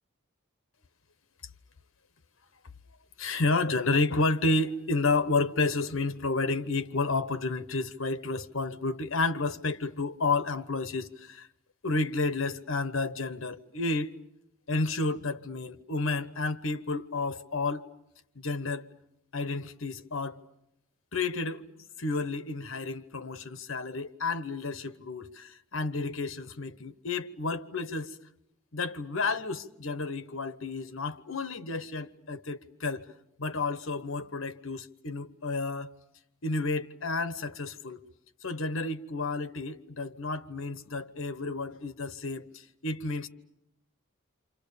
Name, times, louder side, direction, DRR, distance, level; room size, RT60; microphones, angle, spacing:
voice 1, 3.2-11.5 11.8-14.1 14.7-17.9 18.3-18.9 19.3-20.4 21.1-21.6 22.0-28.2 28.7-33.1 33.4-35.9 36.4-38.0 38.4-43.3, left 3 dB, 70° left, 1.1 m, -31 dB
29.0 x 26.0 x 6.9 m
head